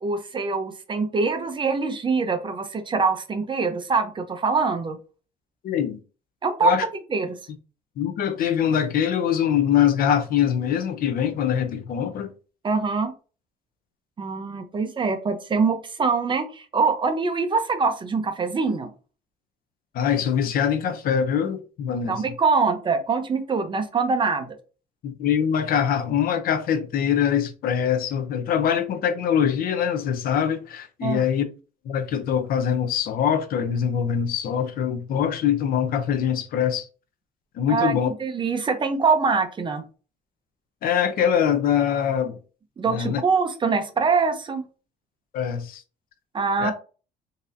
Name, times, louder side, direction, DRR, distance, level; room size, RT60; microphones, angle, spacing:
voice 1, 0.0-5.0 6.4-6.7 7.1-7.4 12.6-13.1 14.2-18.9 22.1-24.6 31.0-31.2 37.7-39.8 42.8-44.6 46.3-46.7, right 4 dB, 30° right, 0.6 m, -24 dB
voice 2, 5.6-6.0 6.6-6.8 8.0-12.3 19.9-22.2 25.0-31.5 31.8-36.9 37.5-38.1 40.8-42.4 42.8-43.2 45.3-45.8 46.6-46.7, left 8 dB, 60° left, 0.6 m, -23 dB
3.9 x 2.7 x 2.6 m
cardioid pair, 110°, 17 cm